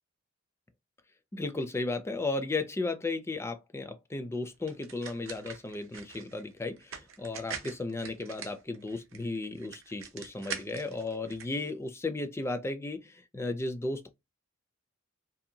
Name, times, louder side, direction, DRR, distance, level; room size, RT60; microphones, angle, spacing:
voice 1, 1.3-14.1, left 2 dB, 15° left, 0.3 m, -35 dB
sound 1, 4.7-11.5, right 6 dB, 70° right, 0.6 m, -44 dB
2.7 x 2.1 x 2.7 m
head